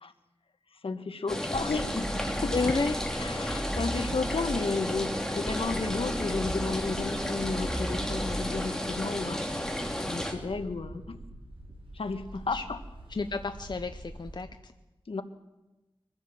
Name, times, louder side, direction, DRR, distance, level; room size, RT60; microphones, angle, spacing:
voice 1, 0.8-2.1 2.4-2.5 3.2-9.6 10.1-11.2 11.9-12.8 15.1-15.2, left 4 dB, 75° left, 9 dB, 1.4 m, -33 dB
sound 1, 1.3-10.3, equal, 5° left, 2.5 m, -33 dB
sound 2, 1.5-4.8 5.5-8.8, right 1 dB, 10° right, 0.8 m, -38 dB
voice 2, 2.5-3.0 12.5-12.6 13.1-14.7, left 3 dB, 50° left, 7 dB, 0.8 m, -31 dB
sound 3, 3.7-14.4, right 1 dB, 70° right, 5.4 m, -46 dB
23.5 x 15.0 x 7.8 m, 1.1 s
wide cardioid pair, 95°, 10 cm